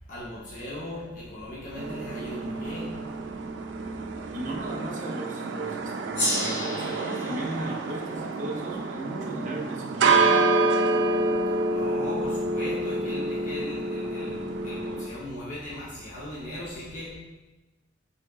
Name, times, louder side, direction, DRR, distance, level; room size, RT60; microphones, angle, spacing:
voice 1, 0.1-3.0 11.7-17.2, left 1 dB, 45° left, -7 dB, 0.7 m, -38 dB
sound 1, 1.8-15.1, right 3 dB, 65° right, 0.3 m, -28 dB
voice 2, 4.3-10.4 14.2-14.3, right 1 dB, 40° right, -2 dB, 0.7 m, -36 dB
Gong, 6.1-10.9, left 1 dB, 65° left, 1.4 m, -34 dB
3.9 x 3.6 x 2.3 m, 1.1 s
head